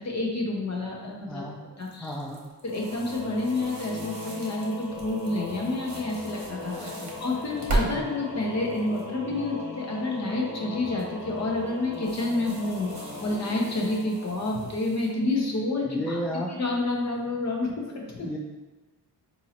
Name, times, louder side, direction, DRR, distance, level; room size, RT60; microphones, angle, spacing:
voice 1, 0.0-1.4 1.8-2.2 2.6-6.9 7.2-16.2 16.5-18.3, left 2 dB, 40° left, -1 dB, 0.9 m, -29 dB
voice 2, 1.3-1.6 2.0-2.4 6.8-7.1 7.8-8.0 15.8-16.5 18.2-18.4, equal, 5° left, -1 dB, 0.4 m, -33 dB
sound 1, 1.8-7.9 8.4-9.0 10.9-11.2 11.9-15.1, right 2 dB, 40° right, 1.1 m, -37 dB
Singing / Musical instrument, 2.6-15.1, left 2 dB, 55° left, 1.2 m, -39 dB
3.7 x 2.8 x 2.9 m, 1.2 s
supercardioid pair, 70°, 42 cm